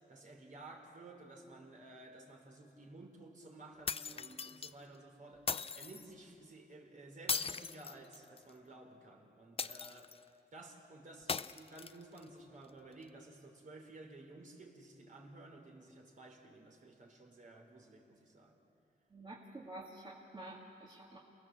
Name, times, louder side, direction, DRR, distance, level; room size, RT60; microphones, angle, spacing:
voice 1, 0.1-10.1 10.5-18.6, right 2 dB, 50° right, 1 dB, 3.9 m, -54 dB
sound 1, 3.9-4.7 5.5-6.1 7.3-8.5 9.6-10.2 11.3-12.2, left 5 dB, 35° left, 0.5 m, -39 dB
voice 2, 19.1-21.2, right 1 dB, 30° right, -4 dB, 2.4 m, -49 dB
28.5 x 20.0 x 7.6 m, 2.8 s
cardioid pair, 105°, 17 cm